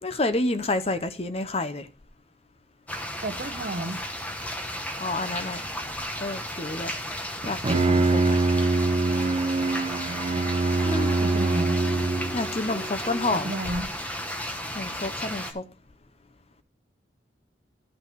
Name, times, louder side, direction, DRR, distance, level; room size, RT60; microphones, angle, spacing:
voice 1, 0.0-1.9 5.0-5.6 6.2-6.9 7.4-8.4 10.8-11.2 12.3-13.8 14.4-15.6, left 2 dB, 35° left, 0.7 m, -29 dB
sound 1, 2.9-15.5, equal, 10° left, 1.1 m, -34 dB
voice 2, 3.2-4.0 11.2-11.8 13.3-13.9, right 1 dB, 50° right, 0.9 m, -31 dB
Bowed string instrument, 7.4-12.5, right 3 dB, 30° right, 0.4 m, -24 dB
12.5 x 5.8 x 4.5 m
head